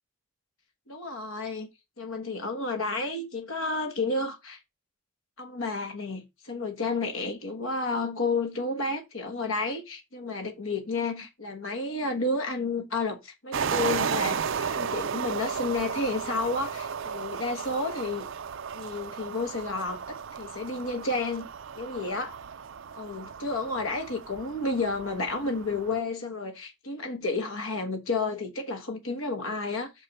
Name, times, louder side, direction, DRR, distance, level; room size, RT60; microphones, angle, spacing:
voice 1, 0.9-1.7 2.0-4.6 5.4-18.3 18.7-21.5 21.8-22.4 22.9-29.9, left 3 dB, 75° left, 1.4 m, -31 dB
sound 1, 13.5-26.0, right 7 dB, 65° right, 0.5 m, -34 dB
6.7 x 5.0 x 5.5 m
head